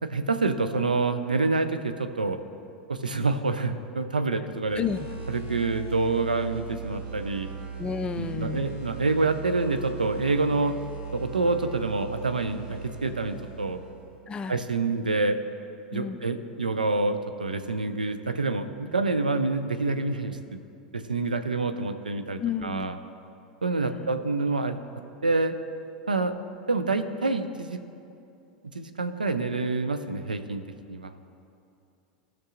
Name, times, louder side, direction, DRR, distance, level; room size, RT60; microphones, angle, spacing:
voice 1, 0.0-2.4 2.9-4.9 5.3-7.5 8.2-10.8 11.1-13.8 14.5-15.4 15.9-20.6 20.9-23.0 23.6-24.8 25.2-25.5 26.1-26.3 26.7-27.8 28.6-30.6 30.9-31.1, right 3 dB, 90° right, 9 dB, 0.5 m, -27 dB
sound 1, 4.6-14.1, right 5 dB, 35° right, 1.4 m, -39 dB
voice 2, 4.8-5.1 7.8-8.7 14.3-14.6 15.9-16.2 22.3-22.9 23.8-24.2, left 6 dB, 20° left, 11 dB, 0.4 m, -32 dB
16.5 x 5.9 x 2.5 m, 2.6 s
figure-of-eight pair, 85°, 4 cm